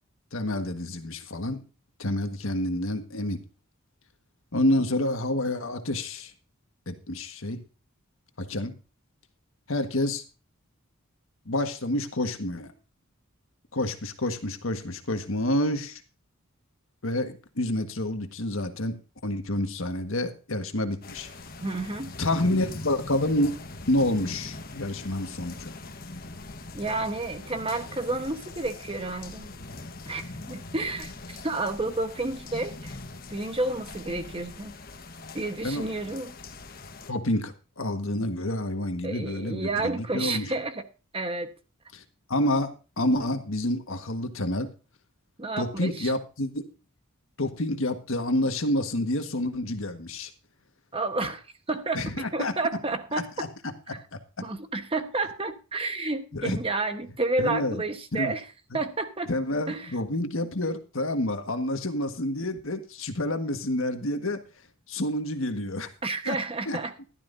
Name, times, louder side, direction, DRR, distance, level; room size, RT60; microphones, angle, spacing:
voice 1, 0.3-1.6 2.0-3.4 4.5-6.3 6.9-7.6 8.4-8.7 9.7-10.2 11.4-12.7 13.7-16.0 17.0-19.0 19.2-21.3 22.2-23.5 23.9-25.7 35.6-36.2 37.1-40.5 41.9-42.0 42.3-44.7 45.6-46.6 47.4-50.3 51.9-52.5 53.1-54.2 56.3-56.6 57.4-57.8 58.1-58.3 58.7-58.8 59.3-64.4 64.9-65.9 66.2-66.4 66.7-66.8, left 1 dB, 65° left, 1.6 m, -28 dB
sound 1, 21.0-37.1, left 2 dB, 45° left, 1.3 m, -42 dB
voice 2, 21.6-22.2 26.7-29.5 30.1-33.0 33.3-34.7 35.3-36.3 39.0-40.8 41.1-41.5 45.4-46.1 50.9-53.3 53.9-54.0 54.4-58.4 58.7-59.3 59.7-59.9 66.0-66.9, right 2 dB, 25° right, 1.2 m, -30 dB
15.0 x 12.0 x 2.7 m
head